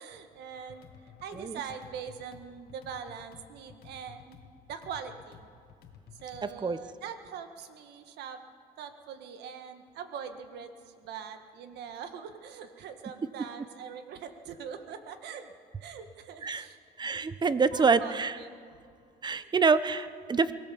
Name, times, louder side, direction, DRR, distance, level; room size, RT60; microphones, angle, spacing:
voice 1, 0.0-4.4 4.7-5.5 6.2-8.4 8.8-10.7 11.0-15.5 15.8-16.8 17.4-18.5 19.3-19.5, right 7 dB, 80° right, 8 dB, 1.8 m, -42 dB
sound 1, 0.5-6.5, left 7 dB, 70° left, 1.9 m, -54 dB
voice 2, 17.0-18.4 19.2-20.5, right 5 dB, 25° right, 14 dB, 0.9 m, -26 dB
23.5 x 17.0 x 7.2 m, 2.2 s
cardioid pair, 110°, 17 cm